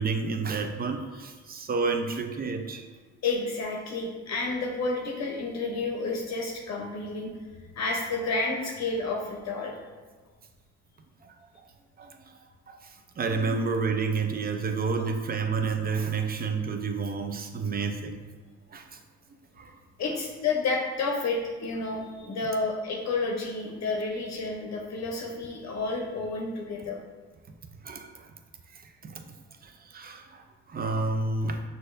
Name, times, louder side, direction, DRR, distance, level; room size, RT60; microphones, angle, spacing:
voice 1, 0.0-2.9 12.0-12.1 12.7-12.8 13.2-18.2 18.7-18.8 19.6-19.7 27.8-28.1 29.0-29.2 29.6-30.4 30.7-31.6, right 4 dB, 30° right, 6 dB, 0.5 m, -29 dB
voice 2, 3.2-7.3 7.8-9.7 20.0-27.0, left 3 dB, 60° left, -1 dB, 0.7 m, -30 dB
6.2 x 2.7 x 2.5 m, 1.4 s
cardioid pair, 90°, 30 cm